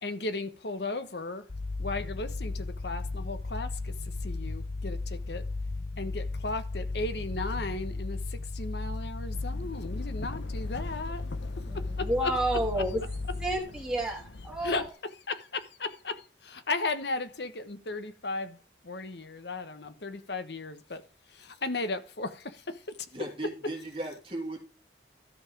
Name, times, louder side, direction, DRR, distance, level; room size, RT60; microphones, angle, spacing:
voice 1, 0.0-1.5 1.8-5.5 6.0-11.2 11.6-12.3 12.7-12.8 14.6-18.6 18.8-21.0 21.3-23.0, left 3 dB, 70° left, 1.2 m, -36 dB
sound 1, 1.5-13.6, left 3 dB, 50° left, 0.7 m, -35 dB
sound 2, 9.3-14.9, left 2 dB, 90° left, 0.9 m, -45 dB
voice 2, 11.7-13.0 13.4-14.9, right 1 dB, 5° right, 3.2 m, -30 dB
voice 3, 23.1-24.6, right 2 dB, 30° right, 2.5 m, -36 dB
13.0 x 5.6 x 4.9 m
head